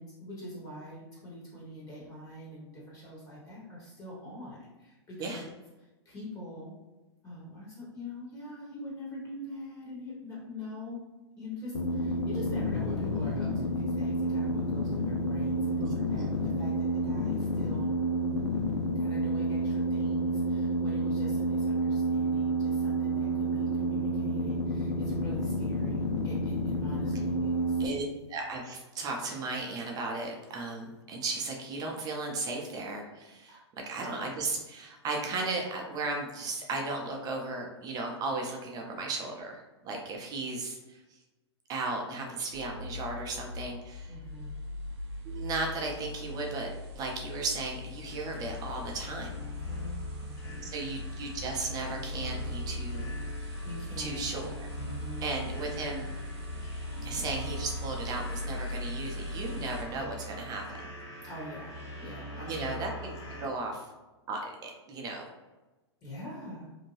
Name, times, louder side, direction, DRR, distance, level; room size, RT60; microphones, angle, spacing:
voice 1, 0.0-5.4 6.0-6.7 7.2-11.0 11.4-17.9 18.9-27.8 33.5-33.6 40.4-40.5 44.1-44.5 49.5-50.7 53.6-54.3 54.8-55.3 61.2-62.9 66.0-66.7, left 1 dB, 25° left, -5 dB, 1.1 m, -44 dB
sound 1, 11.7-27.9, right 1 dB, 80° left, 0.5 m, -29 dB
voice 2, 15.8-16.3 27.8-28.0 28.3-33.6 33.9-41.2 41.7-44.1 45.2-49.3 50.7-53.1 54.0-54.5 55.2-56.1 57.0-60.9 62.5-63.1 63.4-63.9 64.3-65.3, right 3 dB, 25° right, 0 dB, 0.5 m, -35 dB
sound 2, 42.5-59.8, left 2 dB, 60° right, 0.7 m, -40 dB
sound 3, 48.1-63.5, equal, 50° left, 1.4 m, -42 dB
2.6 x 2.1 x 3.1 m, 1.1 s
hypercardioid pair, 115°, 15 cm